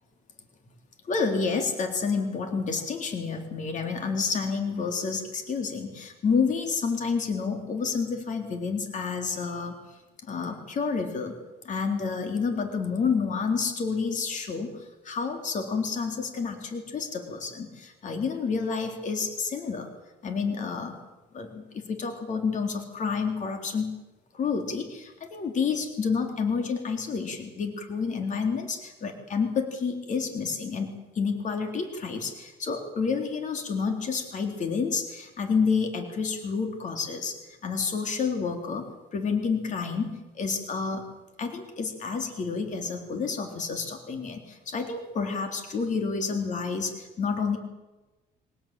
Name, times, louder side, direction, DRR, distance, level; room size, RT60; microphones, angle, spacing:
voice 1, 1.1-9.8 10.2-11.4 11.6-19.9 20.2-21.0 21.3-23.9 24.3-41.1 41.4-47.6, left 5 dB, 45° left, 6 dB, 3.6 m, -29 dB
24.0 x 18.5 x 9.0 m, 1.1 s
cardioid pair, 110°, 17 cm